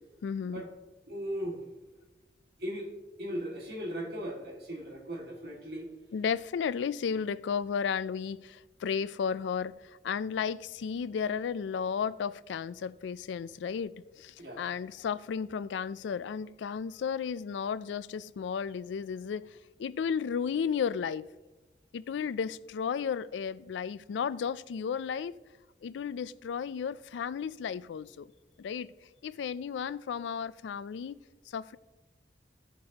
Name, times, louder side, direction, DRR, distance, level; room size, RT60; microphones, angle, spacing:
voice 1, 0.2-0.6 6.1-21.3 21.9-25.3 25.8-28.3 28.6-28.9 29.2-31.2 31.5-31.8, left 6 dB, 85° left, 0.3 m, -34 dB
voice 2, 1.1-1.6 2.6-5.9 14.4-14.7, equal, 60° right, 1.9 m, -38 dB
14.5 x 6.6 x 2.8 m
head